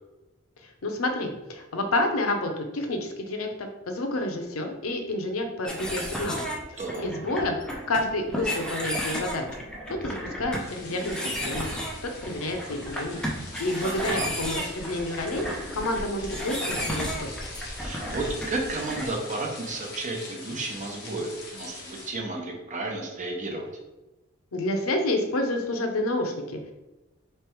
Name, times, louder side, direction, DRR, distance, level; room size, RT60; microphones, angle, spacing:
voice 1, 0.6-6.5 7.0-9.5 9.9-11.7 12.0-13.2 13.6-15.5 15.7-17.3 24.5-26.7, left 1 dB, 90° left, 4 dB, 0.7 m, -29 dB
sound 1, 5.7-19.1, equal, 5° left, 0.6 m, -33 dB
voice 2, 6.8-7.1 13.8-14.3 17.8-23.7, right 2 dB, 35° right, 0 dB, 0.9 m, -32 dB
sound 2, 10.6-22.1, left 2 dB, 55° left, 1.1 m, -43 dB
3.3 x 3.3 x 4.5 m, 1.0 s
head